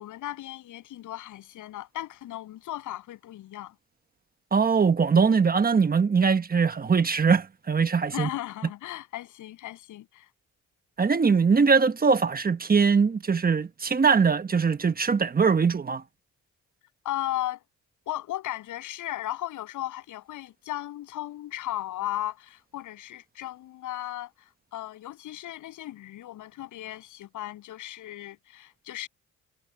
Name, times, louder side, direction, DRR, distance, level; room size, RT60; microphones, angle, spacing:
voice 1, 0.0-3.7 8.1-10.3 17.0-17.6 18.1-29.1, left 14 dB, 85° left, 7.9 m, -36 dB
voice 2, 4.5-8.3 11.0-16.0, right 5 dB, 30° right, 1.3 m, -22 dB
cardioid pair, 90°, 30 cm